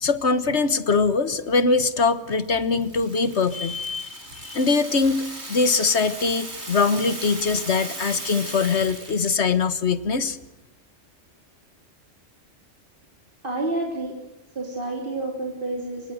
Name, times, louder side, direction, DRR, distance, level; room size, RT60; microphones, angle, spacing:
voice 1, 0.0-10.4, left 4 dB, 70° left, 13 dB, 1.7 m, -22 dB
Rattle (instrument), 2.5-9.4, right 2 dB, 70° right, 5.1 m, -37 dB
voice 2, 13.4-14.2 14.6-16.1, right 2 dB, 45° right, 1 dB, 3.7 m, -29 dB
28.0 x 24.0 x 6.5 m, 0.96 s
omnidirectional pair, 1.2 m